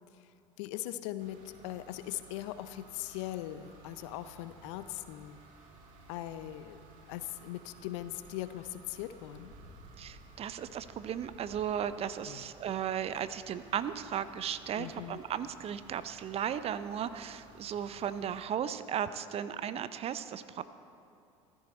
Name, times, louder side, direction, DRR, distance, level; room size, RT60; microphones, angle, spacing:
voice 1, 0.1-5.4 6.1-6.8 7.1-9.5 12.3-12.5 14.7-15.2, left 14 dB, 65° left, 13 dB, 0.6 m, -40 dB
sound 1, 1.2-18.5, right 3 dB, 55° right, 2.1 m, -57 dB
sound 2, 4.3-12.5, equal, 85° right, 3.0 m, -60 dB
voice 2, 10.0-20.6, right 9 dB, 40° right, 13 dB, 0.6 m, -36 dB
14.5 x 14.0 x 4.3 m, 2.7 s
hypercardioid pair, 70°, 17 cm